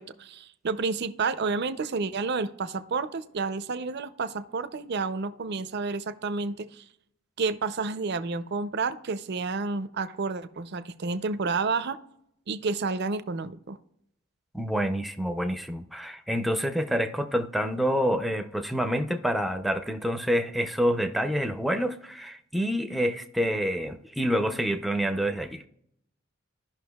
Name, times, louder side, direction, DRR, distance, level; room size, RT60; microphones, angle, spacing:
voice 1, 0.0-6.8 7.4-12.0 12.5-13.8, right 4 dB, 55° right, 0.5 m, -30 dB
voice 2, 14.5-25.7, equal, ahead, 0.5 m, -27 dB
15.0 x 5.8 x 2.3 m
head